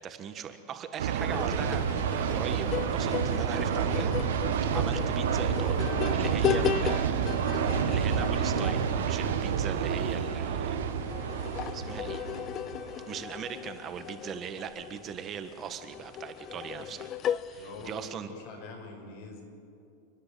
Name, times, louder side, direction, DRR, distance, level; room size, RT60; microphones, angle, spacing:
voice 1, 0.0-4.2 4.6-7.3 7.6-10.8 11.7-12.2 13.1-17.1 17.4-18.3, right 8 dB, 30° right, 8 dB, 1.5 m, -39 dB
sound 1, 1.0-13.2, right 7 dB, 85° right, 1.7 m, -29 dB
sound 2, 1.2-18.1, left 10 dB, 30° left, 0.5 m, -36 dB
voice 2, 16.6-17.1 17.5-19.4, left 3 dB, 60° left, 2 dB, 5.6 m, -45 dB
29.5 x 10.0 x 8.6 m, 2.7 s
supercardioid pair, 135°, 0 cm